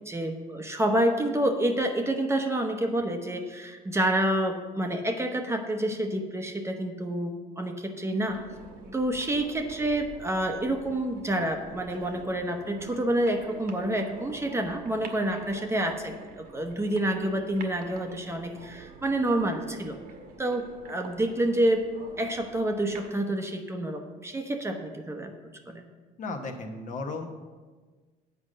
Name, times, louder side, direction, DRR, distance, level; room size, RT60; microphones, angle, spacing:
voice 1, 0.1-8.4 8.9-20.0 20.4-21.8 22.2-25.3 25.7-25.8, right 1 dB, 15° right, 4 dB, 0.8 m, -28 dB
sound 1, 8.2-23.1, right 4 dB, 60° right, 1.2 m, -47 dB
voice 2, 26.2-27.3, left 3 dB, 50° left, 3 dB, 1.0 m, -35 dB
8.1 x 5.1 x 6.4 m, 1.4 s
cardioid pair, 110°, 17 cm